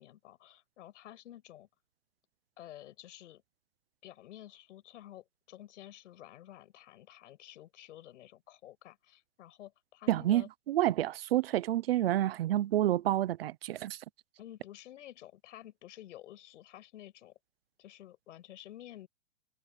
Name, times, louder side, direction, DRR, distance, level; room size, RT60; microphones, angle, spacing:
voice 1, 0.0-1.7 2.6-3.4 4.0-10.5 14.4-17.3 17.8-19.1, left 13 dB, 55° left, 6.8 m, -51 dB
voice 2, 10.1-14.0, right 13 dB, 40° right, 0.7 m, -29 dB
hypercardioid pair, 165°, 44 cm